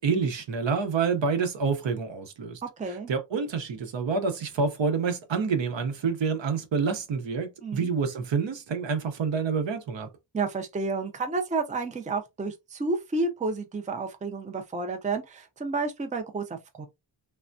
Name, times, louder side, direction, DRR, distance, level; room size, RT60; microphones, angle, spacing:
voice 1, 0.0-2.6 3.1-10.1, right 5 dB, 75° right, 0.8 m, -27 dB
voice 2, 2.6-3.1 7.6-7.9 10.3-16.9, right 3 dB, 15° right, 0.4 m, -31 dB
3.2 x 2.1 x 2.5 m
wide cardioid pair, 150°, 45 cm